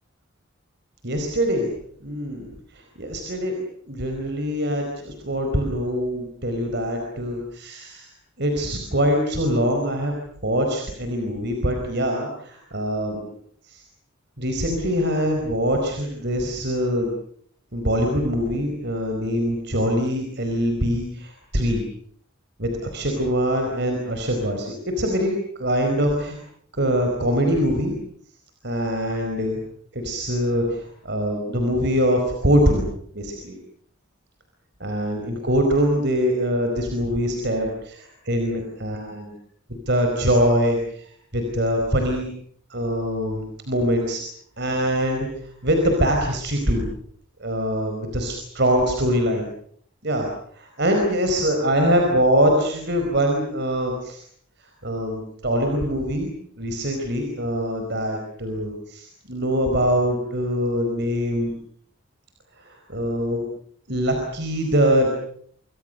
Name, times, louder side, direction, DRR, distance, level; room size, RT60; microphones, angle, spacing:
voice 1, 1.0-1.7 2.0-2.5 2.7-3.5 3.9-8.1 8.4-10.1 10.4-13.2 13.7-13.8 14.4-17.1 17.7-21.8 22.6-25.3 25.6-26.4 26.8-27.9 28.6-29.6 29.9-32.8 33.1-33.5 34.8-39.3 39.9-42.2 42.7-44.2 44.6-45.3 45.6-46.8 47.4-49.5 50.0-50.3 50.5-54.2 54.8-56.3 56.6-61.5 62.6-63.4 63.9-65.1, equal, 55° right, 3 dB, 4.8 m, -23 dB
28.5 x 25.0 x 6.7 m, 0.62 s
head